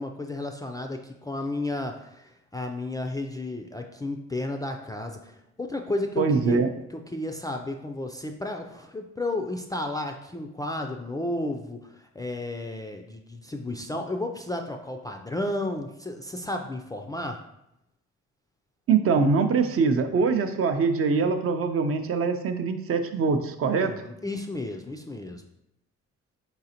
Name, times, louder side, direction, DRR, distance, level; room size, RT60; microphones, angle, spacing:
voice 1, 0.0-6.6 6.9-17.4 23.8-25.4, left 2 dB, 15° left, 3 dB, 0.3 m, -33 dB
voice 2, 6.2-6.7 18.9-23.9, right 5 dB, 50° right, 7 dB, 0.5 m, -23 dB
4.1 x 3.8 x 2.8 m, 0.84 s
cardioid pair, 90°, 30 cm